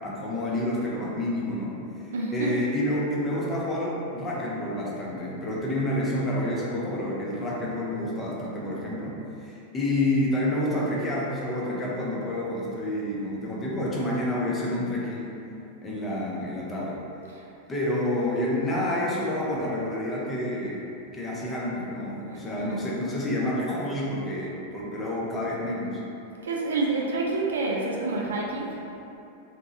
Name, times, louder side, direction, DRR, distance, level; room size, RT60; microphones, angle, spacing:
voice 1, 0.0-9.1 9.4-15.3 15.8-17.0 17.7-20.9 21.1-26.0, left 1 dB, 20° left, -5 dB, 0.6 m, -29 dB
voice 2, 2.1-2.5 17.3-17.4 22.3-22.8 26.4-28.8, right 3 dB, 65° right, -1 dB, 0.3 m, -28 dB
2.9 x 2.2 x 2.6 m, 2.8 s
figure-of-eight pair, 90°, 0 cm